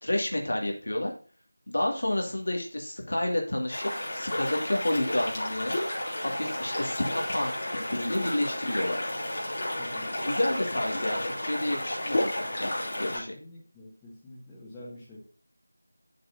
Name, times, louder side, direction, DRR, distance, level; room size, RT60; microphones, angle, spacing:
voice 1, 0.0-1.1 1.7-5.8 6.2-9.0 10.2-12.7 13.0-13.3, left 1 dB, 60° left, 0 dB, 2.2 m, -30 dB
sound 1, 3.7-13.2, left 1 dB, 40° left, 2.8 m, -32 dB
voice 2, 9.8-10.1 13.1-15.2, left 1 dB, 10° left, -9 dB, 1.8 m, -47 dB
9.7 x 6.6 x 2.7 m, 0.39 s
figure-of-eight pair, 170°, 0 cm